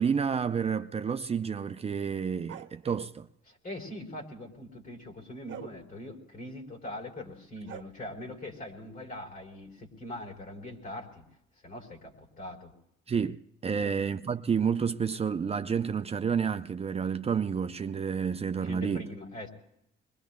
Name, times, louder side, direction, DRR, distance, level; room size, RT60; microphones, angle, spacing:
voice 1, 0.0-3.3 13.1-19.1, right 6 dB, 30° right, 0.5 m, -30 dB
sound 1, 2.5-3.1 5.5-5.7 7.7-7.8, right 10 dB, 75° right, 0.9 m, -42 dB
voice 2, 3.5-11.2 11.6-12.7 13.8-14.0 18.6-19.5, left 1 dB, 45° left, 3.9 m, -42 dB
26.0 x 22.0 x 2.2 m
cardioid pair, 90°, 20 cm